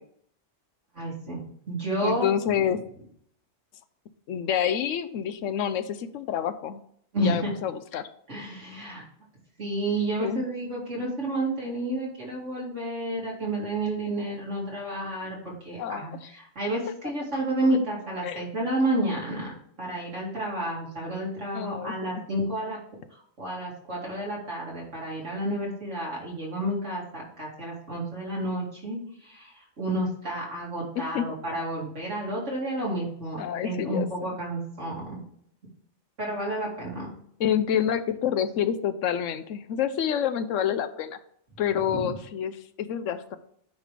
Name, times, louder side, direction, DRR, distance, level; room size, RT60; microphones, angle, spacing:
voice 1, 0.9-1.4 1.7-2.3 7.1-7.5 8.3-9.0 9.6-19.5 19.8-22.8 23.4-35.2 36.2-37.1 41.9-42.1, right 1 dB, 75° right, -4 dB, 2.9 m, -30 dB
voice 2, 2.0-2.8 4.3-6.8 7.2-8.1 10.2-10.4 15.8-16.3 18.2-18.4 21.5-22.1 30.9-31.2 33.4-34.1 37.4-41.2 41.6-43.4, left 9 dB, 90° left, 12 dB, 1.0 m, -28 dB
9.3 x 3.4 x 5.1 m, 0.67 s
omnidirectional pair, 1.3 m